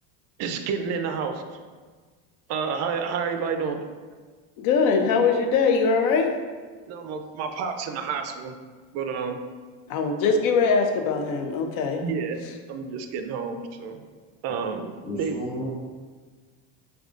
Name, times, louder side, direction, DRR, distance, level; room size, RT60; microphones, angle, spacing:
voice 1, 0.4-1.6 2.5-3.8 6.9-8.6 8.9-9.4 12.0-12.4 12.7-14.0 14.4-14.9 15.2-15.3, right 6 dB, 50° right, 6 dB, 0.4 m, -29 dB
voice 2, 4.6-6.3 9.9-12.0, left 5 dB, 65° left, 5 dB, 0.5 m, -22 dB
voice 3, 15.0-15.7, left 1 dB, 40° left, -9 dB, 1.0 m, -33 dB
4.8 x 2.3 x 2.5 m, 1.5 s
cardioid pair, 125°, 33 cm